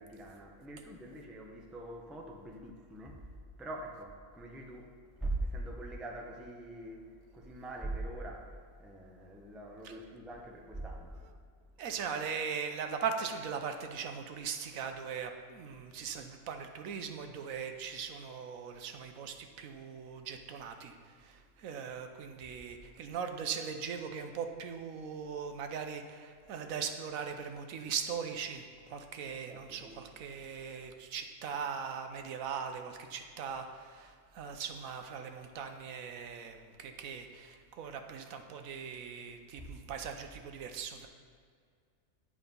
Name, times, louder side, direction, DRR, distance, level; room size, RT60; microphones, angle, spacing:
voice 1, 0.0-11.3 29.5-30.0 39.6-39.7, right 2 dB, ahead, 1 dB, 0.5 m, -43 dB
voice 2, 11.8-41.1, right 6 dB, 75° right, 6 dB, 1.1 m, -40 dB
9.2 x 4.9 x 5.4 m, 2.1 s
omnidirectional pair, 1.5 m